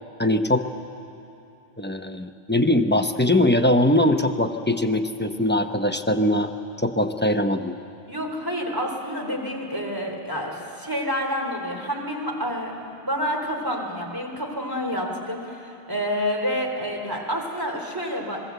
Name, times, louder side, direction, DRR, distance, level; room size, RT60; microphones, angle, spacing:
voice 1, 0.2-0.7 1.8-6.5 6.8-7.8, left 1 dB, 10° left, 6 dB, 0.9 m, -21 dB
voice 2, 8.1-18.4, equal, 20° right, 1 dB, 3.3 m, -28 dB
26.5 x 20.5 x 8.1 m, 2.6 s
omnidirectional pair, 1.1 m